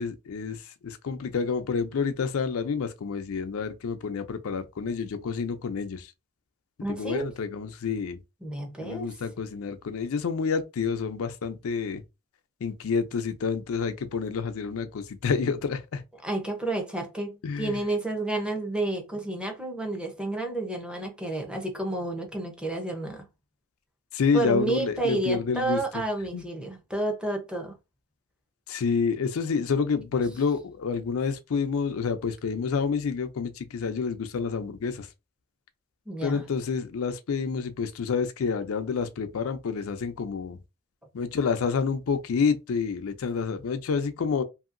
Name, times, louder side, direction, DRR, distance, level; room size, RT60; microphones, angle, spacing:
voice 1, 0.0-6.1 6.9-8.2 8.8-12.0 12.6-16.0 17.4-17.8 24.1-25.8 26.3-26.4 28.7-35.1 36.2-40.6 41.1-44.4, left 5 dB, 75° left, 0.4 m, -28 dB
voice 2, 6.8-7.3 8.4-9.1 16.2-23.2 24.3-27.8 36.1-36.4, right 2 dB, 5° right, 0.6 m, -30 dB
2.8 x 2.7 x 2.5 m
head